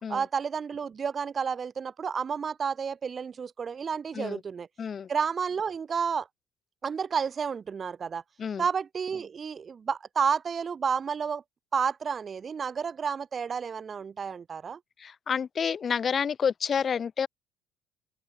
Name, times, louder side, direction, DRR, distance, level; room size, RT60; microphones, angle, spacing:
voice 1, 0.1-4.7 5.1-6.3 6.8-8.2 8.6-11.4 11.7-14.8, right 6 dB, 30° right, 0.6 m, -31 dB
voice 2, 4.8-5.1 8.4-8.6 15.0-17.3, left 7 dB, 35° left, 1.1 m, -29 dB
cardioid pair, 130°, 0 cm